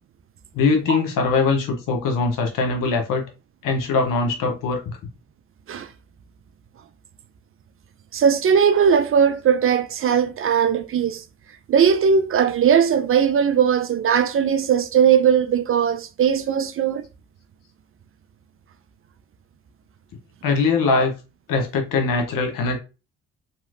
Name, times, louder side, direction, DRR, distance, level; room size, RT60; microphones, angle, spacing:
voice 1, 0.5-3.2 3.6-4.8 20.4-21.1 21.5-22.8, left 4 dB, 65° left, 1.1 m, -21 dB
voice 2, 8.1-11.2 11.7-17.0, right 7 dB, 40° right, 0.4 m, -19 dB
3.0 x 2.7 x 2.5 m
hypercardioid pair, 50°, 35 cm